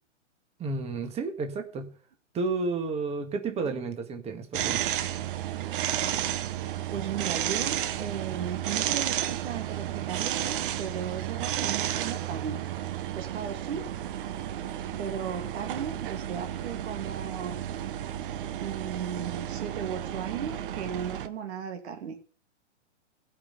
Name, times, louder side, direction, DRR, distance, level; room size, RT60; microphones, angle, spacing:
voice 1, 0.6-1.9 2.3-4.8, right 3 dB, 15° right, 5 dB, 1.7 m, -31 dB
voice 2, 3.5-3.8 6.9-12.6 13.1-13.9 15.0-17.6 18.6-22.2, right 8 dB, 60° right, 4 dB, 2.5 m, -36 dB
Road Works and Jackhammer, 4.5-21.3, right 11 dB, 45° right, 1.1 m, -32 dB
16.0 x 5.8 x 8.1 m, 0.41 s
hypercardioid pair, 135°, 36 cm